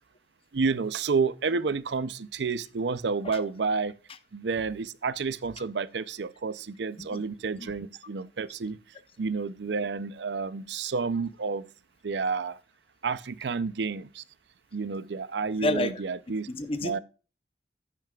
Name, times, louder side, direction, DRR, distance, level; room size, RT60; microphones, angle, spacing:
voice 1, 0.5-3.9 4.3-8.8 9.2-11.6 12.0-12.6 13.0-14.2 14.7-16.5 16.8-17.0, right 4 dB, 75° right, 0.5 m, -30 dB
voice 2, 15.6-16.0 16.5-17.0, left 1 dB, 30° left, 0.8 m, -30 dB
10.5 x 9.1 x 2.3 m
head